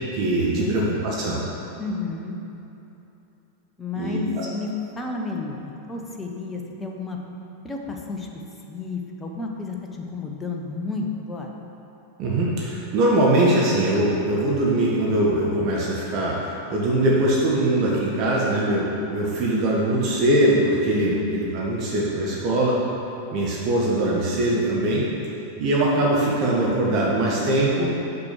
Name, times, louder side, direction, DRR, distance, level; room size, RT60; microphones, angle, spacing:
voice 1, 0.1-1.4 4.0-4.5 12.2-22.8 23.3-25.0 25.6-27.9, right 1 dB, 40° right, -4 dB, 1.2 m, -22 dB
voice 2, 1.8-2.4 3.8-4.7 5.0-7.2 7.6-8.3 8.7-11.5 21.0-21.3, left 3 dB, 15° left, 0 dB, 1.0 m, -31 dB
6.1 x 6.0 x 6.7 m, 2.9 s
figure-of-eight pair, 90°, 0 cm